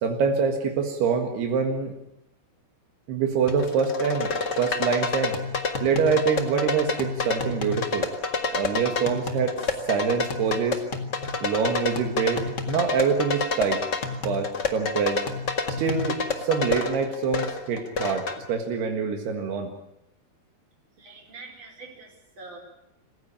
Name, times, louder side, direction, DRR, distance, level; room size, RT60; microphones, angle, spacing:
voice 1, 0.0-1.9 3.1-4.3 4.6-5.4 5.8-8.1 8.5-10.9 11.4-13.9 14.3-15.2 15.8-19.7, right 5 dB, 80° right, 4 dB, 3.7 m, -25 dB
sound 1, 3.5-18.4, left 4 dB, 45° left, 1.5 m, -29 dB
voice 2, 21.0-22.6, right 3 dB, 30° right, 1 dB, 5.3 m, -44 dB
26.5 x 15.5 x 8.8 m, 0.82 s
omnidirectional pair, 4.6 m